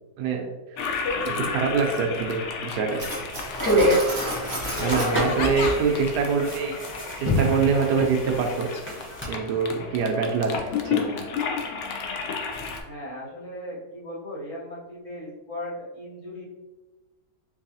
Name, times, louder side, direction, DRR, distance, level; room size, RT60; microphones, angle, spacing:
Toilet flush, 0.8-12.8, left 5 dB, 85° left, 0.6 m, -32 dB
voice 1, 1.2-3.0 4.8-6.8 7.2-8.7 9.3-11.1, right 5 dB, 80° right, 3 dB, 1.1 m, -25 dB
Cutlery silverware, 3.0-5.2, right 1 dB, 30° right, 1.1 m, -31 dB
sound 1, 3.3-9.3, equal, 20° left, 0.3 m, -27 dB
voice 2, 5.1-5.6 12.8-16.4, left 1 dB, 55° left, -7 dB, 1.2 m, -37 dB
4.7 x 2.7 x 2.7 m, 1.2 s
omnidirectional pair, 1.8 m